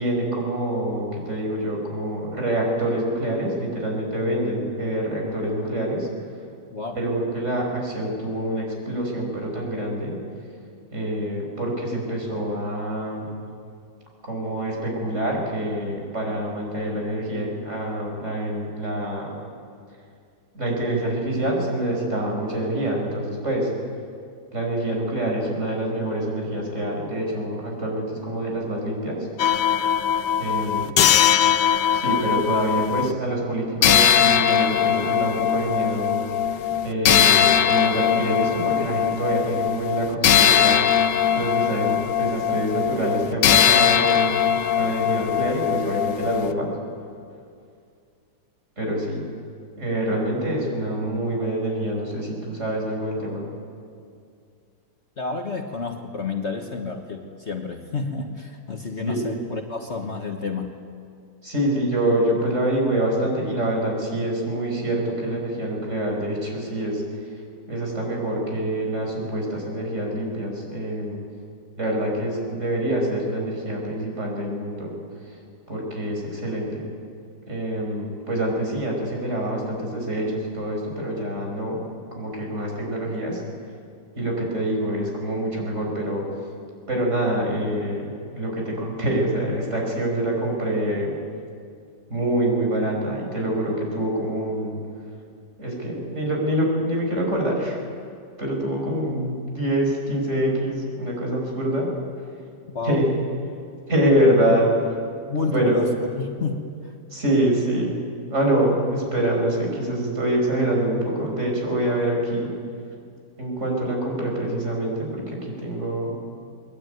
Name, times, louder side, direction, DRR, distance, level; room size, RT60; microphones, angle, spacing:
voice 1, 0.0-6.1 6.9-10.2 10.9-13.3 14.2-19.3 20.5-23.7 24.5-29.3 30.4-30.9 31.9-36.2 36.8-40.9 41.3-46.7 48.8-49.2 49.8-53.5 59.1-59.2 61.4-67.0 67.7-71.2 71.8-74.9 75.7-76.8 77.5-81.8 82.1-83.4 84.2-86.3 86.9-91.1 92.1-94.8 95.6-97.8 98.4-101.9 102.8-103.1 103.9-104.7 105.4-105.8 107.1-108.0 108.3-112.5 113.4-116.1, right 1 dB, 40° right, 0 dB, 6.3 m, -25 dB
sound 1, 29.4-33.1 33.8-46.5, left 8 dB, 90° left, 1.6 m, -20 dB
voice 2, 55.2-60.7 102.7-103.0 105.3-106.9, left 4 dB, 45° left, 3 dB, 1.5 m, -30 dB
22.0 x 22.0 x 9.5 m, 2.3 s
omnidirectional pair, 1.8 m